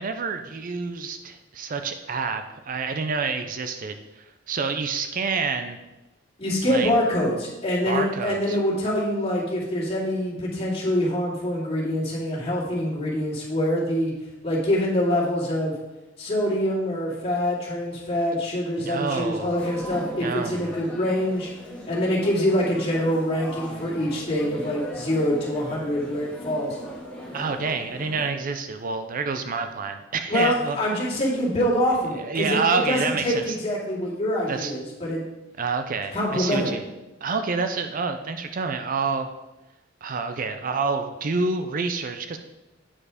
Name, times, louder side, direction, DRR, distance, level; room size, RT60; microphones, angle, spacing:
voice 1, 0.0-5.8 6.6-6.9 7.8-8.6 18.8-19.5 20.2-20.6 27.3-30.8 32.1-33.6 34.5-34.7 35.6-36.8 37.2-39.3 40.0-42.4, right 4 dB, 45° right, 8 dB, 0.5 m, -28 dB
voice 2, 6.4-14.1 14.4-15.7 16.2-21.5 21.9-26.8 30.3-35.2 36.1-36.8, left 1 dB, 30° left, -5 dB, 2.6 m, -25 dB
sound 1, 19.6-28.3, equal, 5° left, 1.8 m, -38 dB
8.6 x 4.8 x 4.9 m, 1.0 s
head